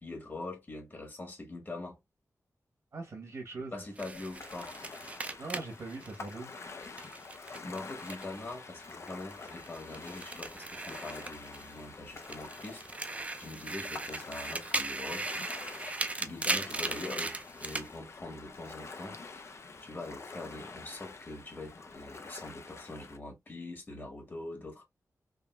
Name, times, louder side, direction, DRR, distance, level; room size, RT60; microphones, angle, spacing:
voice 1, 0.0-2.0 3.7-4.7 7.6-12.8 13.4-15.3 16.2-19.5 19.8-24.8, left 2 dB, 35° left, 1.3 m, -43 dB
voice 2, 2.9-3.8 5.4-6.5, right 3 dB, 60° right, 1.1 m, -41 dB
sound 1, 4.0-8.5 8.8-11.8 12.2-17.9, right 2 dB, 25° right, 0.4 m, -38 dB
Ocean, 4.1-23.2, left 4 dB, 50° left, 0.5 m, -47 dB
3.6 x 2.4 x 2.2 m
wide cardioid pair, 105°, 6 cm